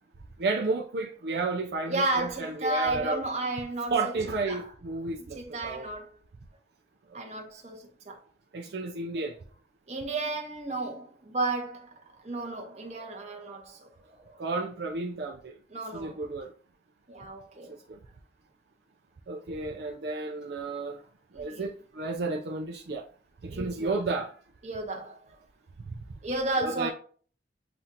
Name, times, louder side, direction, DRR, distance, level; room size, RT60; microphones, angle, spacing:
voice 1, 0.4-3.2 3.9-5.8 8.5-9.4 14.4-15.6 15.9-16.5 19.3-21.0 21.3-23.0 23.4-24.3 26.6-26.9, right 3 dB, 70° right, 0.5 m, -32 dB
voice 2, 1.9-4.1 4.5-4.7 5.3-6.2 7.1-8.2 9.9-14.4 15.7-16.2 17.1-17.8 21.3-21.7 23.5-23.9 24.6-25.4 26.2-26.9, right 2 dB, 40° right, 1.1 m, -33 dB
7.5 x 2.5 x 2.8 m
head